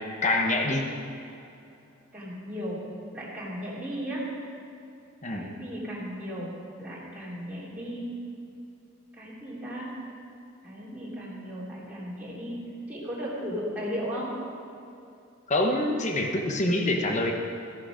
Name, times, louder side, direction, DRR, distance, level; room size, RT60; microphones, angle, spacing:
voice 1, 0.2-0.9 5.2-5.4 15.5-17.3, left 2 dB, 35° left, 2 dB, 1.1 m, -25 dB
voice 2, 2.1-2.8 3.1-4.2 5.2-6.5 6.8-8.1 9.1-9.9 10.6-12.6 12.9-14.4, equal, 5° right, -8 dB, 3.1 m, -35 dB
14.0 x 11.5 x 5.1 m, 2.6 s
head